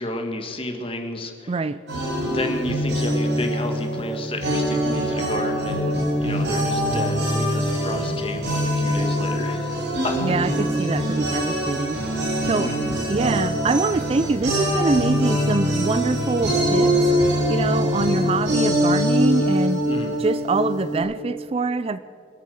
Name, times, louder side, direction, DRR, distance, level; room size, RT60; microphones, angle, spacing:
voice 1, 0.0-1.5 2.2-9.7 10.0-10.1 12.6-12.9 19.9-20.2, left 1 dB, 30° left, 5 dB, 1.6 m, -31 dB
voice 2, 1.5-1.8 10.2-12.7 13.1-17.0 17.5-19.9 20.2-22.0, right 3 dB, 30° right, 14 dB, 0.3 m, -24 dB
sound 1, 1.9-21.0, equal, 75° right, 5.0 m, -23 dB
25.0 x 8.5 x 6.4 m, 2.4 s
head